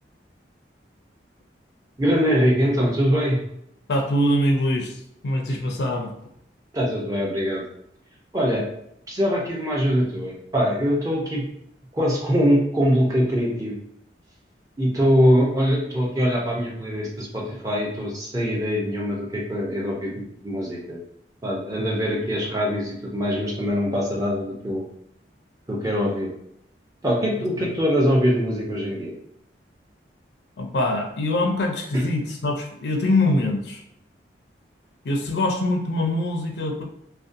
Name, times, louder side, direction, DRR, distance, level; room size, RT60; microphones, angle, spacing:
voice 1, 2.0-3.4 5.5-5.6 6.7-7.6 8.3-8.6 9.1-11.4 11.9-13.8 14.8-21.0 21.4-24.8 25.7-26.3 27.0-29.1, equal, 20° right, -3 dB, 0.5 m, -23 dB
voice 2, 3.9-6.1 27.6-27.7 30.6-33.8 35.0-36.8, left 1 dB, 70° left, 2 dB, 0.4 m, -23 dB
2.6 x 2.1 x 2.5 m, 0.75 s
head